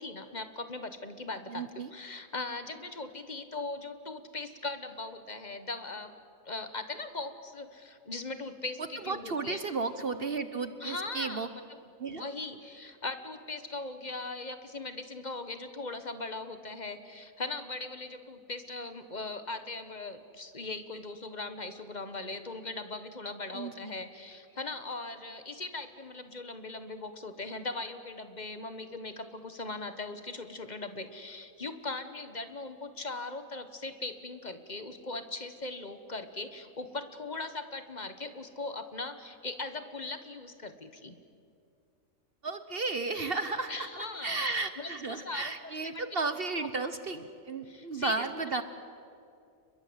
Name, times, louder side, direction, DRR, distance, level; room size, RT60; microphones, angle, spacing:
voice 1, 0.0-6.1 6.4-9.6 10.8-11.8 12.1-41.2 43.7-44.4 44.8-46.0 46.6-46.9 47.6-48.6, left 3 dB, 30° left, 9 dB, 1.4 m, -39 dB
voice 2, 1.5-1.9 9.0-11.5 12.0-12.2 23.5-23.9 42.4-43.9 44.2-48.6, right 3 dB, 45° right, 10 dB, 1.1 m, -34 dB
30.0 x 22.0 x 8.1 m, 2.4 s
omnidirectional pair, 1.4 m